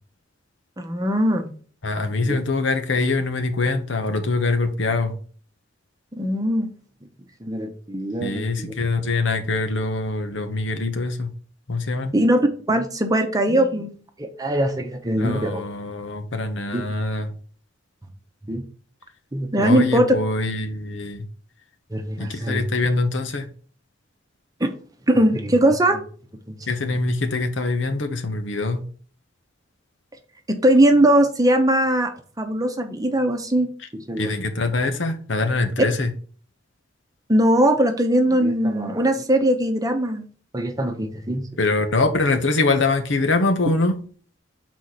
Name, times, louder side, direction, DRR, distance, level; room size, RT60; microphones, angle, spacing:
voice 1, 0.8-1.5 2.2-2.4 6.2-6.7 7.4-8.7 12.1-13.9 14.2-15.6 16.7-16.8 18.4-18.6 19.3-20.1 21.9-22.6 24.6-24.7 25.1-26.0 26.9-27.0 30.5-32.1 32.4-34.3 37.3-40.3 40.5-41.4, right 1 dB, 20° right, 0.8 m, -20 dB
voice 2, 1.8-5.2 8.2-11.3 11.7-12.1 15.2-17.3 19.6-21.2 22.2-23.5 26.7-28.8 34.2-36.1 41.6-44.0, left 3 dB, 75° left, 1.0 m, -23 dB
6.3 x 4.2 x 4.1 m
head